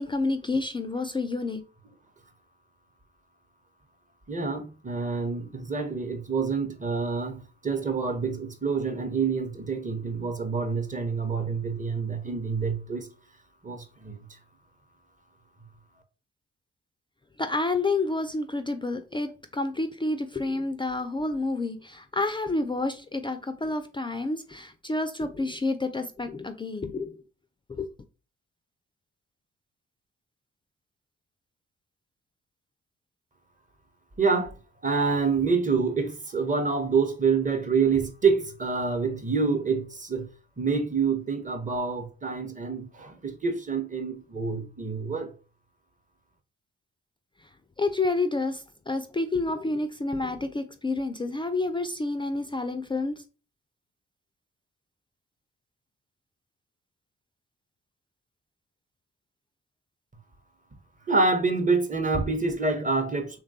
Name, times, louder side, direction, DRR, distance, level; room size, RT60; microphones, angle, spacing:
voice 1, 0.0-1.6 17.4-27.1 27.7-27.9 47.8-53.1, left 2 dB, 15° left, 0.3 m, -29 dB
voice 2, 4.3-13.1 13.6-14.2 34.2-34.5 34.8-40.3 40.6-45.3 61.1-63.4, right 4 dB, 25° right, 0.7 m, -27 dB
3.1 x 2.2 x 2.6 m
hypercardioid pair, 40°, 30 cm